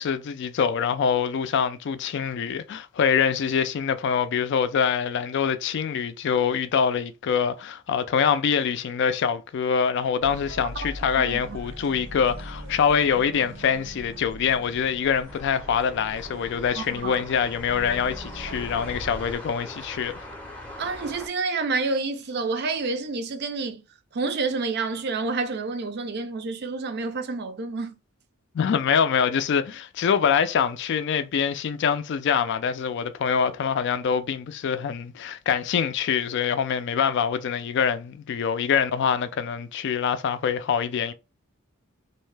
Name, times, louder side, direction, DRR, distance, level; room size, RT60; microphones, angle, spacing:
voice 1, 0.0-20.3 28.5-41.1, left 7 dB, 55° left, 0.3 m, -24 dB
sound 1, 10.2-19.4, right 1 dB, 75° right, 0.8 m, -40 dB
voice 2, 11.2-11.6 16.8-17.2 20.8-23.8 24.1-28.0, right 3 dB, 50° right, 0.5 m, -29 dB
sound 2, 15.3-21.3, left 1 dB, 5° left, 0.6 m, -41 dB
2.7 x 2.1 x 3.1 m
head